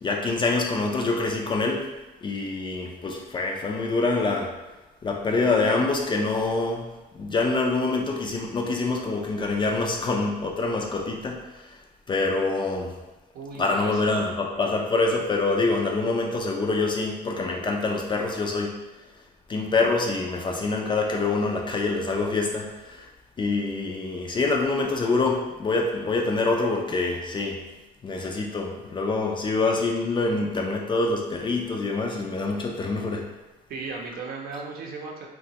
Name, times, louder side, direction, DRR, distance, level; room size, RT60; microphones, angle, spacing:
voice 1, 0.0-1.9 2.2-4.5 5.0-6.8 7.1-11.7 12.1-13.0 13.6-18.7 19.5-23.1 23.4-27.6 28.0-33.3, left 3 dB, 30° left, 0 dB, 0.4 m, -25 dB
voice 2, 13.3-14.2 33.7-35.3, right 4 dB, 60° right, 0 dB, 0.6 m, -36 dB
2.9 x 2.2 x 2.8 m, 1.1 s
cardioid pair, 110°, 17 cm